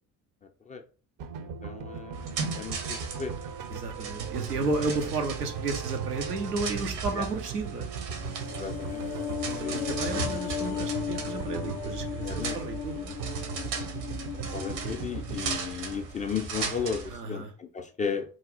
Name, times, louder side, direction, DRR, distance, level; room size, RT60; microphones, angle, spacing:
sound 1, 1.2-15.6, right 7 dB, 45° right, 0.5 m, -38 dB
voice 1, 1.6-2.2 2.6-3.3 7.2-7.3 8.6-9.0 9.4-9.8 10.1-10.4 12.2-12.6 14.5-17.0 17.3-18.2, left 6 dB, 20° left, 6 dB, 0.3 m, -34 dB
sound 2, 2.1-17.2, right 4 dB, 70° right, 0.9 m, -37 dB
voice 2, 3.7-7.9 9.3-13.2 17.1-17.5, right 3 dB, 90° right, 4 dB, 0.5 m, -33 dB
sound 3, 8.1-16.6 16.9-17.0, left 10 dB, 70° left, 0.6 m, -37 dB
3.0 x 2.3 x 3.7 m, 0.37 s
figure-of-eight pair, 45°, 46 cm